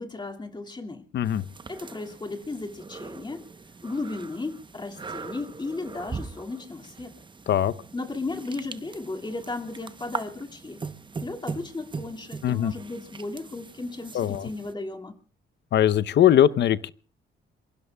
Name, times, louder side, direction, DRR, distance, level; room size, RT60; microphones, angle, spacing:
voice 1, 0.0-1.1 1.7-3.5 3.8-7.2 7.9-10.8 11.2-15.1, left 3 dB, 20° left, 4 dB, 2.3 m, -35 dB
voice 2, 1.1-1.4 7.5-7.7 12.4-12.7 14.1-14.5 15.7-16.9, left 10 dB, 60° left, 16 dB, 0.8 m, -21 dB
sound 1, 1.2-14.7, right 4 dB, 25° right, 0.9 m, -41 dB
27.5 x 23.0 x 2.3 m, 0.40 s
cardioid pair, 90°, 20 cm